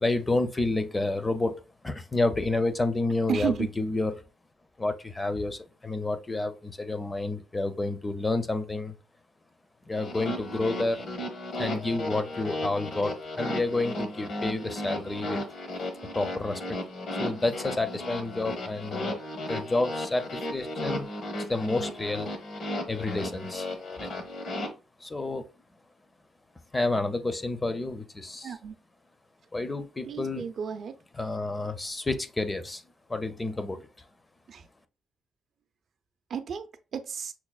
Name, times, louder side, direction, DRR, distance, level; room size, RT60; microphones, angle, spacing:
voice 1, 0.0-4.2 4.8-8.9 9.9-11.1 11.6-15.4 16.1-16.8 17.2-19.2 19.5-21.1 21.3-22.3 22.9-23.7 24.0-24.2 25.0-25.5 26.7-28.6 29.5-30.5 31.1-32.8 33.1-33.8, left 2 dB, 20° left, 0.5 m, -29 dB
voice 2, 3.3-3.7 28.4-28.7 30.1-30.9 34.5-34.6 36.3-36.6 36.9-37.3, right 7 dB, 60° right, 0.4 m, -32 dB
sound 1, 9.9-24.7, left 1 dB, 70° left, 1.0 m, -35 dB
5.8 x 2.0 x 2.3 m
cardioid pair, 90°, 0 cm